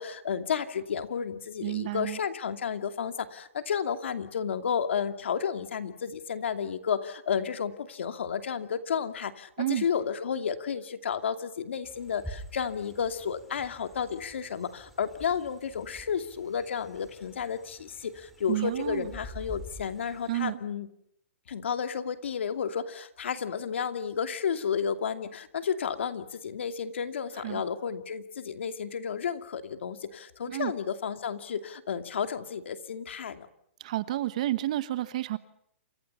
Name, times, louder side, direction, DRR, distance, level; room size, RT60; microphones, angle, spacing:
voice 1, 0.0-20.9 21.5-33.5, left 7 dB, 65° left, 9 dB, 2.6 m, -32 dB
voice 2, 1.6-2.2 9.6-9.8 18.5-19.1 20.3-20.6 27.4-27.6 30.5-30.7 33.8-35.4, right 15 dB, 35° right, 14 dB, 1.2 m, -30 dB
sound 1, 11.8-20.5, equal, ahead, 2.7 m, -48 dB
29.0 x 27.0 x 5.7 m, 0.72 s
hypercardioid pair, 180°, 7 cm